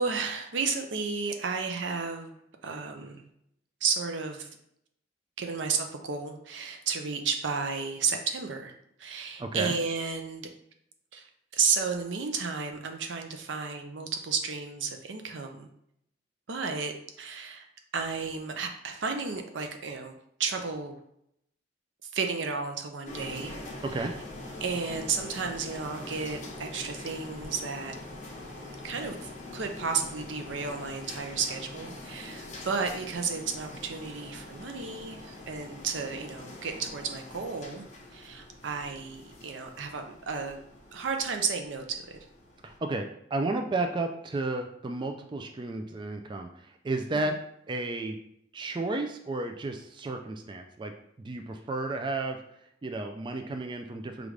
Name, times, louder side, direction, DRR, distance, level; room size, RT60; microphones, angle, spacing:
voice 1, 0.0-2.3 2.6-3.3 3.8-4.5 5.4-8.7 9.0-10.5 11.1-11.3 11.5-15.7 16.5-17.7 17.9-20.1 20.4-21.0 22.1-23.6 24.0-24.1 24.6-27.9 28.8-40.6 40.9-42.2, right 5 dB, 85° right, 5 dB, 0.6 m, -32 dB
voice 2, 9.4-9.8 23.8-24.1 42.6-47.4 47.7-48.2 48.5-50.9 51.2-52.4 52.8-54.3, right 2 dB, 25° right, 5 dB, 0.3 m, -32 dB
sound 1, 23.1-42.8, left 2 dB, 40° left, 0.8 m, -44 dB
5.0 x 2.4 x 3.2 m, 0.74 s
head